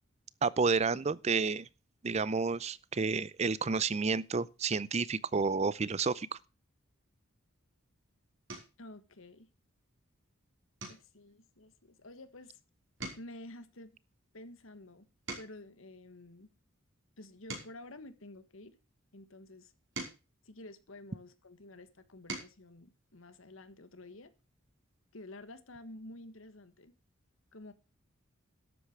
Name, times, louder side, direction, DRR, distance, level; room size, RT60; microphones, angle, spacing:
voice 1, 0.4-1.7 2.0-6.3, right 4 dB, 30° right, 0.5 m, -30 dB
sound 1, 7.6-7.9 8.5-8.9 9.4-9.7 10.0-10.2 10.8-12.6 12.9-15.8 16.4-18.9 19.5-21.4 21.9-22.7 24.0-24.1 24.4-24.6, right 3 dB, 65° right, 5.2 m, -48 dB
voice 2, 8.8-9.5 10.9-12.6 13.2-14.0 14.3-15.1 15.4-16.5 17.2-18.8 19.1-19.7 20.4-24.3 25.1-26.9 27.5-27.7, left 1 dB, 75° left, 1.5 m, -50 dB
12.0 x 8.3 x 6.0 m
head